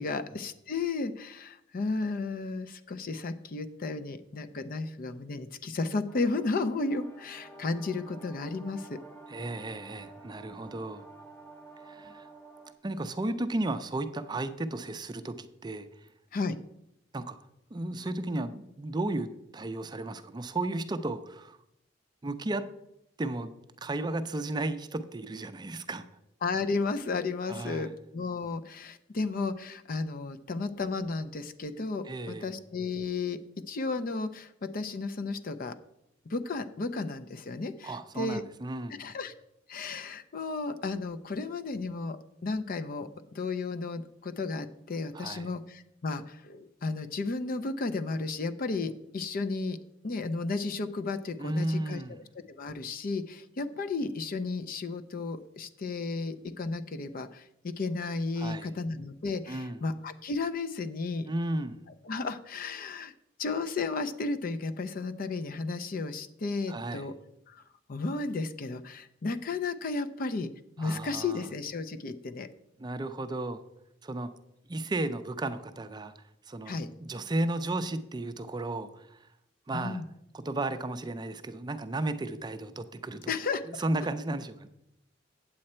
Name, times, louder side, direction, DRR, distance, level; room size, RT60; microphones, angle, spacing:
voice 1, 0.0-9.0 16.3-16.6 26.4-33.4 33.7-35.8 36.3-38.4 38.9-39.3 39.7-49.8 50.0-61.3 62.0-63.1 63.4-67.1 67.5-67.6 67.9-70.5 70.8-72.5 76.7-76.9 79.7-80.0 83.3-83.8, left 3 dB, 50° left, 11 dB, 0.5 m, -33 dB
sound 1, 6.1-12.7, right 2 dB, 10° left, 0.7 m, -50 dB
voice 2, 9.3-11.0 11.8-12.3 12.8-15.9 17.1-17.4 17.7-21.6 22.2-22.7 23.2-23.5 23.8-26.0 27.5-27.9 32.1-32.5 37.8-39.0 45.1-45.5 51.4-52.2 58.4-58.7 59.5-59.8 61.3-61.8 66.7-67.1 70.8-71.5 72.8-73.6 74.0-74.3 74.7-76.1 76.5-79.2 79.7-80.0 80.3-83.3 83.7-84.7, right 2 dB, 20° right, 9 dB, 0.4 m, -34 dB
8.6 x 7.6 x 4.3 m, 0.82 s
head